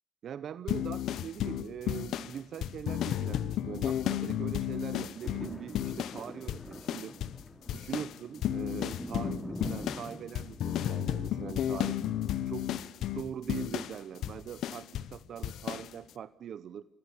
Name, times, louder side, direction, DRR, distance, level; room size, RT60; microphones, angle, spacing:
voice 1, 0.2-7.1 7.7-12.0 12.4-12.7 13.1-16.8, right 9 dB, 65° right, 15 dB, 0.7 m, -42 dB
sound 1, 0.7-6.2 6.5-7.4 7.7-15.1 15.4-15.9, left 11 dB, 80° left, 0.9 m, -33 dB
sound 2, 4.8-13.1 13.6-13.7, equal, 10° left, 4.1 m, -45 dB
26.0 x 15.5 x 8.5 m, 1.1 s
cardioid pair, 90°, 0 cm